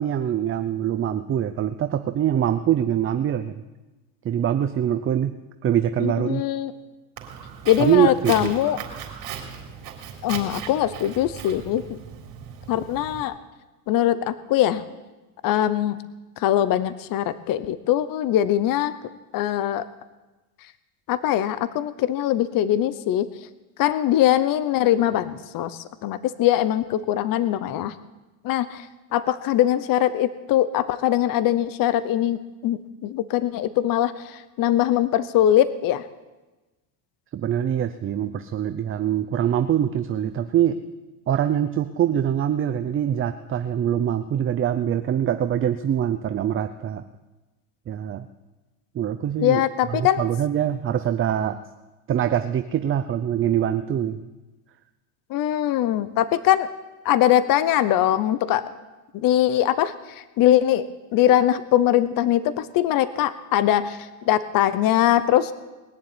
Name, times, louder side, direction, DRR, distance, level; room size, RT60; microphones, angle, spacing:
voice 1, 0.0-3.5 4.2-5.3 5.6-6.4 7.8-8.5 37.3-40.8 41.3-47.0 47.9-48.3 48.9-49.6 49.9-51.6 52.1-54.2, right 10 dB, 25° right, 10 dB, 0.7 m, -23 dB
voice 2, 6.0-6.7 7.7-8.8 10.2-12.0 12.7-13.4 13.9-14.8 15.4-16.0 16.4-18.9 19.3-19.8 21.1-23.3 23.8-27.9 28.4-28.9 29.1-36.0 49.4-50.2 55.3-56.7 57.0-58.6 59.1-59.9 60.4-64.0 64.3-65.5, left 12 dB, 45° left, 14 dB, 0.9 m, -22 dB
Walk footsteps, 7.2-13.2, right 8 dB, 55° right, 3.7 m, -38 dB
20.0 x 7.2 x 9.6 m, 1.1 s
supercardioid pair, 115°, 46 cm